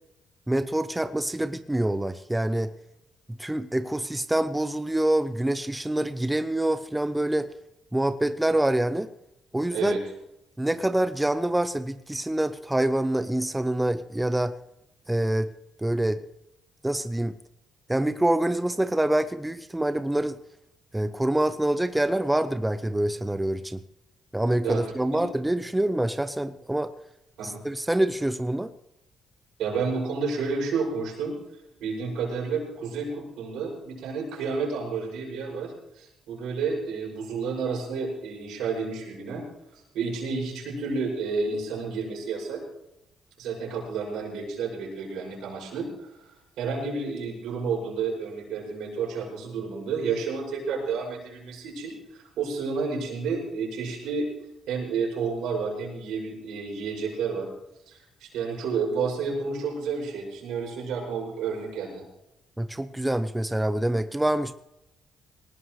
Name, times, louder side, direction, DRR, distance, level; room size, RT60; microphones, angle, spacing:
voice 1, 0.5-2.7 3.4-7.5 7.9-9.1 9.5-10.0 10.6-14.6 15.1-15.5 15.8-16.2 16.8-17.3 17.9-20.4 20.9-23.8 24.3-26.9 27.4-28.7 62.6-64.5, right 1 dB, 10° right, 11 dB, 0.7 m, -26 dB
voice 2, 29.6-31.3 31.8-39.4 39.9-42.6 43.4-46.1 46.6-54.3 54.7-57.5 57.9-62.0, right 5 dB, 85° right, -2 dB, 6.4 m, -30 dB
20.5 x 18.5 x 3.2 m, 0.85 s
cardioid pair, 90°, 0 cm